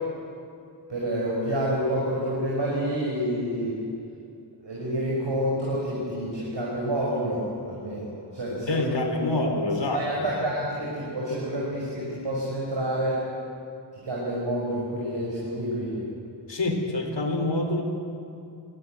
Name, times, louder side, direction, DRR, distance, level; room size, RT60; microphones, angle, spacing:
voice 1, 0.9-3.8 4.6-9.5 9.9-13.2 14.0-16.0, equal, 75° right, -5 dB, 5.6 m, -28 dB
voice 2, 8.7-10.3 16.5-17.8, left 2 dB, 70° left, 3 dB, 4.0 m, -27 dB
23.5 x 17.5 x 9.1 m, 2.5 s
wide cardioid pair, 55°, 44 cm